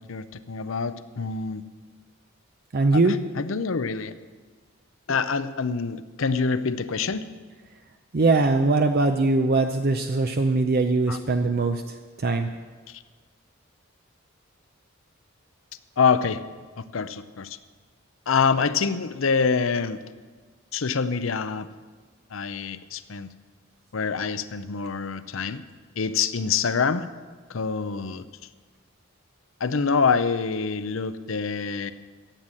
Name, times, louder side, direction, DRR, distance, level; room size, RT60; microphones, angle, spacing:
voice 1, 0.0-1.6 2.9-4.1 5.1-7.3 11.1-11.2 12.9-13.0 16.0-16.4 16.8-17.6 18.3-20.0 20.7-21.7 22.3-23.3 23.9-25.6 26.0-27.1 27.5-28.3 29.6-31.9, left 5 dB, 75° left, 13 dB, 0.6 m, -26 dB
voice 2, 2.7-3.2 8.1-12.5, right 3 dB, 50° right, 6 dB, 0.6 m, -21 dB
13.5 x 9.0 x 7.6 m, 1.4 s
head